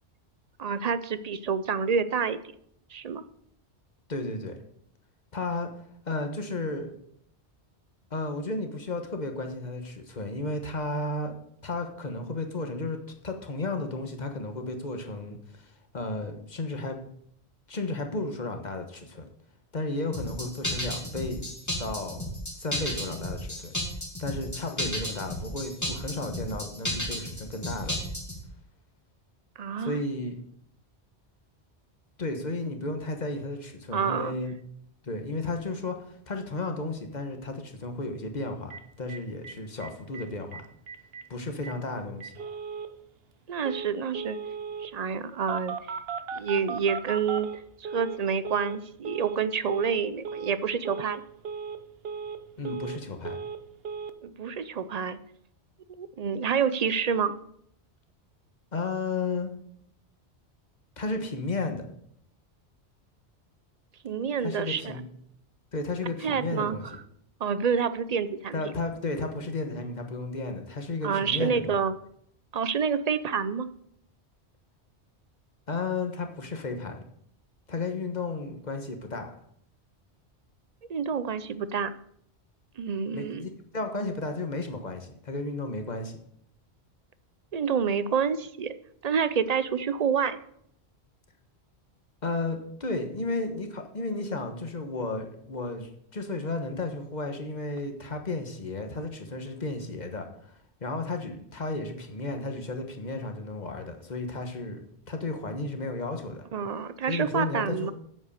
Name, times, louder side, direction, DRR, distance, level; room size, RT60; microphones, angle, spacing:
voice 1, 0.6-2.4 2.9-3.2 29.6-30.0 32.6-32.7 33.9-34.3 43.5-44.4 44.8-45.8 46.3-47.5 47.8-51.2 54.2-55.2 55.9-57.3 64.0-65.0 66.2-66.8 67.4-68.6 71.0-72.0 72.5-73.7 80.9-82.0 82.8-83.5 87.5-88.8 89.0-90.4 106.5-107.9, right 6 dB, 45° right, 14 dB, 0.5 m, -28 dB
voice 2, 4.1-4.6 5.3-5.7 6.1-6.9 8.1-11.4 11.6-17.0 17.7-19.3 19.7-21.5 21.8-22.3 22.6-23.7 24.2-28.0 29.8-30.4 32.2-34.6 35.0-40.6 41.3-42.3 52.6-53.4 58.7-59.5 61.0-61.9 64.4-65.0 65.7-66.8 68.5-71.8 75.7-77.0 77.7-79.3 83.1-86.2 92.2-100.3 100.8-104.8 105.1-106.4 107.1-107.9, left 2 dB, 40° left, 5 dB, 1.4 m, -33 dB
sound 1, 20.1-28.4, left 1 dB, 15° left, 2.0 m, -33 dB
Telephone, 38.7-38.8 39.1-39.2 39.4-39.5 39.8-40.2 40.5-40.6 40.9-41.2 41.6-41.7 42.2-42.9 43.6-43.9 44.1-44.9 45.5-48.2 48.4-48.8 49.0-49.4 49.6-50.0 50.2-50.6 50.8-51.2 51.4-51.8 52.0-53.0 53.2-53.6 53.8-54.1, right 6 dB, 65° right, 1.0 m, -36 dB
8.1 x 7.5 x 6.6 m, 0.69 s
omnidirectional pair, 1.1 m